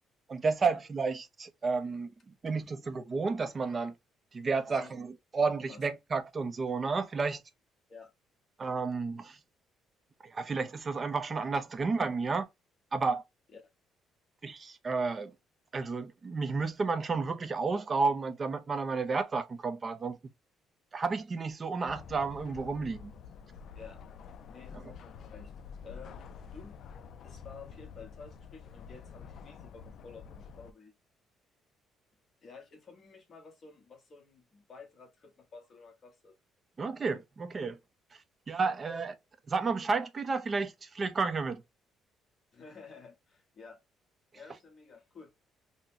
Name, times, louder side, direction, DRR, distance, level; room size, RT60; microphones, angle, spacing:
voice 1, 0.3-2.1 2.4-3.9 4.3-7.4 8.6-9.4 10.2-12.5 12.9-13.2 14.4-15.3 15.7-20.2 20.9-23.1 24.7-24.8 36.8-37.8 38.5-39.1 39.5-41.6, right 4 dB, 25° right, 0.5 m, -31 dB
voice 2, 5.4-5.9 7.9-8.1 13.5-13.6 23.7-24.0 24.5-25.5 25.8-30.9 32.4-36.3 38.6-38.8 42.5-43.8 44.3-45.3, left 5 dB, 35° left, 1.1 m, -52 dB
sound 1, 21.9-30.7, left 6 dB, 50° left, 0.3 m, -48 dB
3.9 x 2.1 x 2.6 m
cardioid pair, 165°, 0 cm